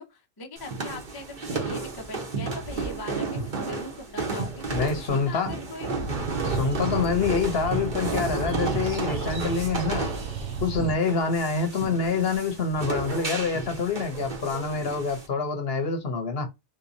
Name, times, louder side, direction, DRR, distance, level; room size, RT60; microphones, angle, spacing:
voice 1, 0.0-4.8 5.1-6.0 11.1-11.2, left 1 dB, 25° left, 0.5 m, -41 dB
sound 1, 0.6-15.3, right 3 dB, 40° right, 1.1 m, -32 dB
voice 2, 4.7-5.5 6.4-10.1 10.6-16.5, left 4 dB, 55° left, 0.9 m, -26 dB
sound 2, 5.9-11.0, right 4 dB, 70° right, 1.1 m, -34 dB
3.4 x 3.0 x 2.6 m
omnidirectional pair, 1.4 m